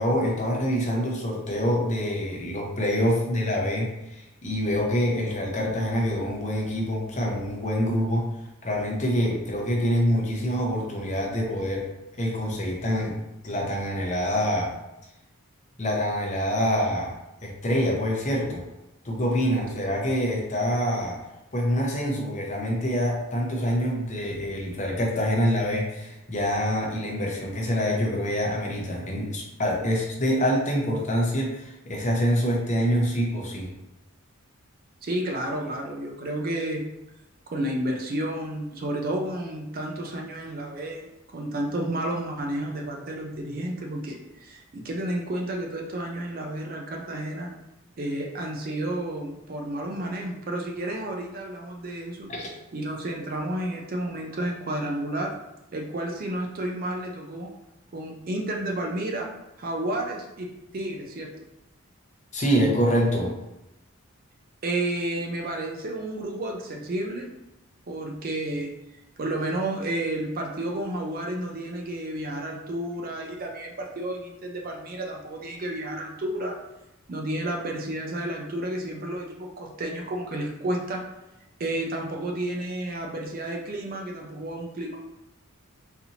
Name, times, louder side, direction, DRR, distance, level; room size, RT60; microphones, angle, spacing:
voice 1, 0.0-8.3 8.6-11.9 12.2-13.2 13.4-14.7 15.8-17.1 17.4-18.7 19.0-21.2 21.5-33.7 52.3-52.5 62.3-63.3, equal, 35° left, -1 dB, 0.7 m, -26 dB
voice 2, 35.0-36.8 37.5-47.5 48.0-52.3 52.7-55.3 55.7-57.5 57.9-59.3 59.6-61.5 64.6-67.3 67.9-68.7 69.2-76.6 77.1-81.0 81.6-85.0, right 1 dB, 40° right, 1 dB, 0.4 m, -31 dB
4.1 x 2.7 x 2.8 m, 0.94 s
head